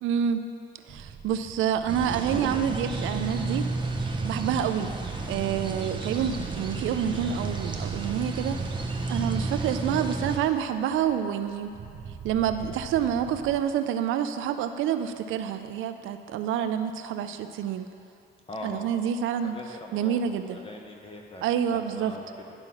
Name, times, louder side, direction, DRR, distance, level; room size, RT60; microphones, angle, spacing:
voice 1, 0.0-0.4 0.9-3.7 4.2-4.9 5.3-8.6 9.1-11.7 12.2-17.9 18.6-19.6 19.9-20.6 21.4-22.1, right 9 dB, 85° right, 9 dB, 0.5 m, -28 dB
sound 1, 0.9-13.6, right 6 dB, 50° right, 0.7 m, -48 dB
sound 2, 1.9-10.4, right 3 dB, 25° right, 0.9 m, -31 dB
voice 2, 18.5-18.9 19.4-22.5, left 1 dB, 25° left, 1 dB, 1.2 m, -42 dB
11.0 x 3.8 x 6.0 m, 2.5 s
cardioid pair, 90°, 20 cm